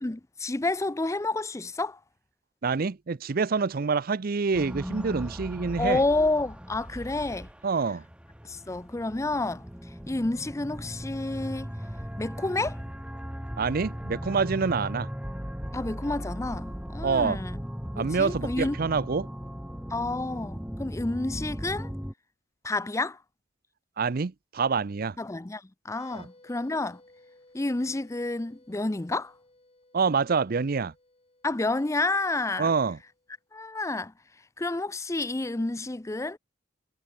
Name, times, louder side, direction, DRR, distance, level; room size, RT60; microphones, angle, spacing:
voice 1, 0.0-2.0 5.8-7.5 8.4-9.6 10.1-11.7 12.2-12.8 15.7-17.6 17.9-18.8 19.9-21.9 22.6-23.2 25.2-27.0 27.5-29.3 31.4-32.7 33.5-34.1 34.6-36.4, left 2 dB, 15° left, 0.5 m, -29 dB
voice 2, 2.6-6.0 7.6-8.0 13.6-15.1 17.0-17.4 18.0-19.3 24.0-25.2 26.1-26.3 29.9-30.9 32.6-33.0, right 5 dB, 50° right, 0.5 m, -26 dB
sound 1, 4.5-22.1, equal, 5° right, 1.6 m, -38 dB
sound 2, 25.9-33.4, left 2 dB, 30° left, 3.8 m, -60 dB
head